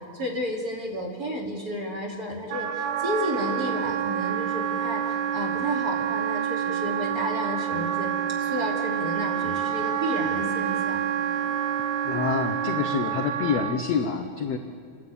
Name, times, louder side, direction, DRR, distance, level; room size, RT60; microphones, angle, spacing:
voice 1, 0.1-8.1 8.4-11.0, equal, 25° right, -3 dB, 2.9 m, -32 dB
Wind instrument woodwind instrument, 2.5-13.8, right 9 dB, 75° right, 2.6 m, -28 dB
voice 2, 12.0-14.6, left 6 dB, 80° left, 5 dB, 1.5 m, -27 dB
29.5 x 11.0 x 8.7 m, 2.2 s
omnidirectional pair, 4.3 m